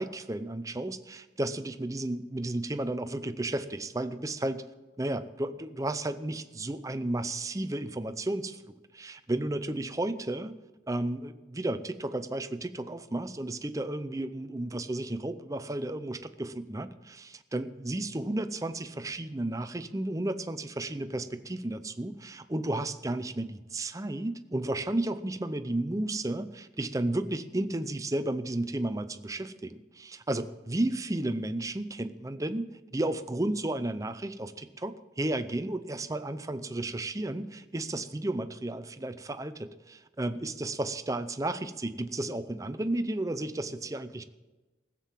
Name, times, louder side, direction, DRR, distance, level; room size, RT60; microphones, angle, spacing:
voice 1, 0.0-4.6 5.0-10.6 10.9-44.2, right 1 dB, 20° right, 11 dB, 0.6 m, -33 dB
15.5 x 7.5 x 7.4 m, 1.2 s
head